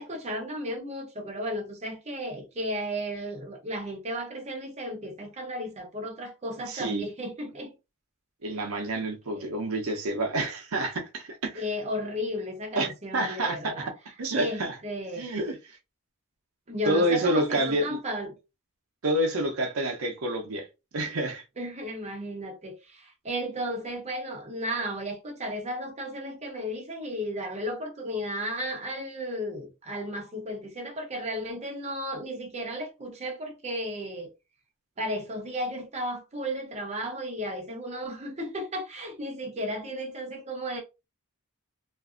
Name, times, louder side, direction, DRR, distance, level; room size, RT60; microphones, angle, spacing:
voice 1, 0.0-7.7 9.3-9.5 11.5-13.9 14.3-15.3 16.7-18.3 21.6-34.3 35.0-40.8, equal, 30° right, 0.7 m, -34 dB
voice 2, 6.7-7.0 8.4-11.6 12.8-13.8 14.2-14.8 15.2-15.6 16.9-18.0 19.0-20.7 20.9-21.4, right 1 dB, 75° right, 0.7 m, -28 dB
2.6 x 2.4 x 2.4 m
head